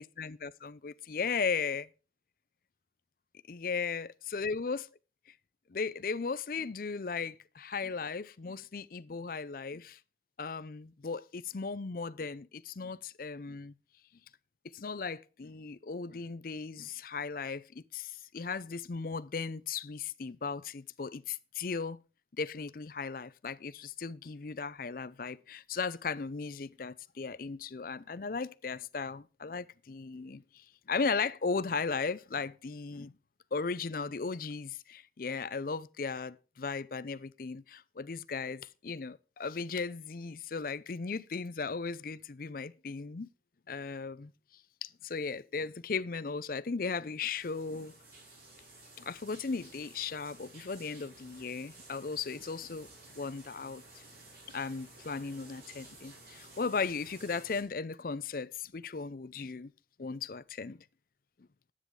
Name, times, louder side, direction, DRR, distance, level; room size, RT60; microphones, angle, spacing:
voice 1, 0.0-1.8 3.5-4.9 5.7-10.0 10.4-13.7 14.6-22.0 22.4-33.1 33.5-43.3 43.7-44.3 44.8-47.9 49.0-52.9 53.1-53.8 54.5-59.7 60.0-60.8, left 5 dB, 50° left, 0.5 m, -36 dB
sound 1, 47.4-57.6, right 2 dB, 55° right, 4.2 m, -54 dB
10.5 x 9.0 x 4.7 m
head